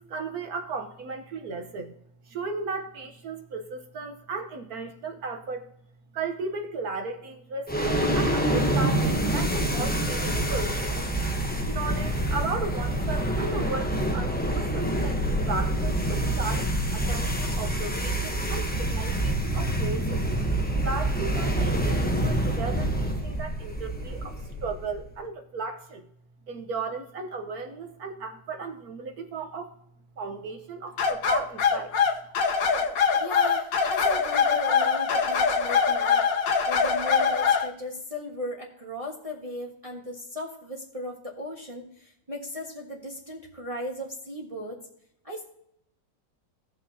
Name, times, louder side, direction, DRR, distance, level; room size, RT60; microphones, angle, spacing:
voice 1, 0.0-1.9 2.3-5.7 6.1-10.8 11.7-20.2 20.8-26.0 26.5-29.8 30.2-31.9, right 4 dB, 60° right, 6 dB, 1.4 m, -35 dB
sound 1, 7.7-25.0, right 1 dB, 10° left, 0.4 m, -26 dB
sound 2, 31.0-37.7, left 6 dB, 90° left, 1.8 m, -23 dB
voice 2, 33.2-36.3 36.7-44.8 45.2-45.4, left 1 dB, 20° right, -2 dB, 1.4 m, -36 dB
18.0 x 6.2 x 2.8 m, 0.71 s
omnidirectional pair, 1.9 m